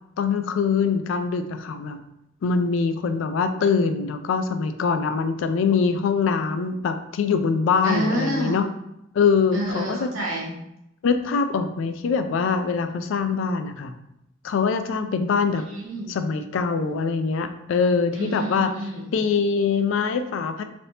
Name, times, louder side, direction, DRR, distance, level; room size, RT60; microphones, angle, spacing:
voice 1, 0.2-2.0 2.4-8.7 9.1-10.1 11.0-13.9 14.4-15.6 16.1-18.7 19.1-20.6, left 5 dB, 70° left, 9 dB, 0.3 m, -23 dB
voice 2, 7.8-8.6 9.5-10.5 15.7-16.1 18.1-19.1, right 1 dB, 80° right, -2 dB, 0.9 m, -28 dB
3.3 x 2.7 x 2.8 m, 0.83 s
head